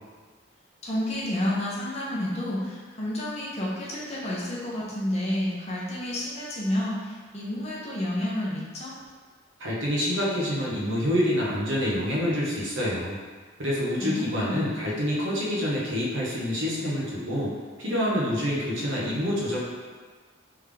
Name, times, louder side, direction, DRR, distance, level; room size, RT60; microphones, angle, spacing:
voice 1, 0.8-8.9 14.0-14.6, left 1 dB, 30° left, -6 dB, 0.8 m, -30 dB
voice 2, 9.6-13.2 13.6-17.5 17.8-19.6, equal, 70° right, -5 dB, 1.0 m, -27 dB
3.5 x 3.4 x 3.4 m, 1.5 s
head